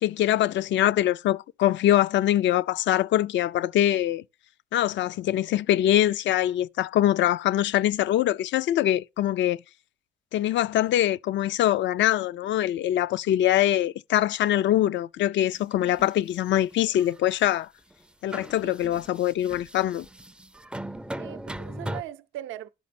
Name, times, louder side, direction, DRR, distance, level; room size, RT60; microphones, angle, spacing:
voice 1, 0.0-4.2 4.7-9.6 10.3-17.7 18.2-20.1, left 12 dB, 70° left, 0.4 m, -23 dB
sound 1, 15.5-16.2 16.7-17.5 17.9-18.0 18.3-22.0, right 1 dB, 5° right, 0.4 m, -39 dB
voice 2, 18.6-19.0 21.2-22.7, right 13 dB, 85° right, 0.6 m, -40 dB
11.5 x 5.2 x 4.1 m
cardioid pair, 90°, 20 cm